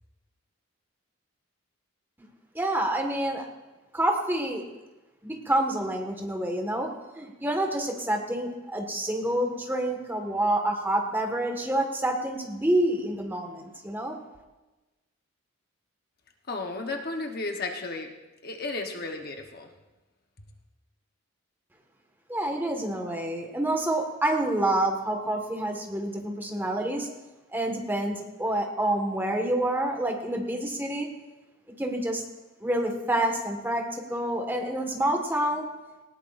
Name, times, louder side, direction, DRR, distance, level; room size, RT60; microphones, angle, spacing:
voice 1, 2.5-3.5 3.9-4.6 5.2-6.9 7.1-14.1 22.3-27.1 27.5-31.1 31.8-32.2 32.6-35.6, right 1 dB, 10° right, 2 dB, 1.6 m, -28 dB
voice 2, 16.5-18.1 18.4-19.7, left 3 dB, 45° left, 3 dB, 1.0 m, -33 dB
19.0 x 18.0 x 2.6 m, 1.1 s
head